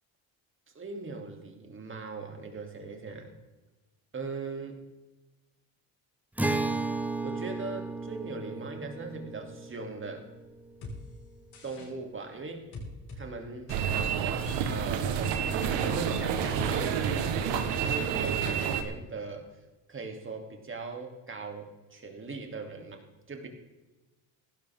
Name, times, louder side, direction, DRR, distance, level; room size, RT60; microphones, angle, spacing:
voice 1, 0.7-3.3 4.1-4.8 7.2-10.3 11.6-12.7 13.1-13.7 14.7-19.5 19.9-23.5, right 3 dB, 30° right, 3 dB, 3.1 m, -39 dB
Acoustic guitar, 6.4-11.8, right 3 dB, 5° right, 0.9 m, -35 dB
sound 1, 10.8-11.0 11.5-11.9 12.7-13.2 13.7-13.8 14.4-14.8 15.1-15.7 16.6-16.7 17.0-17.2 17.5-17.9 18.2-18.3, left 2 dB, 60° left, 5.1 m, -42 dB
sound 2, 13.7-18.8, right 7 dB, 80° right, 1.5 m, -29 dB
15.5 x 12.5 x 3.7 m, 1.1 s
supercardioid pair, 85°, 42 cm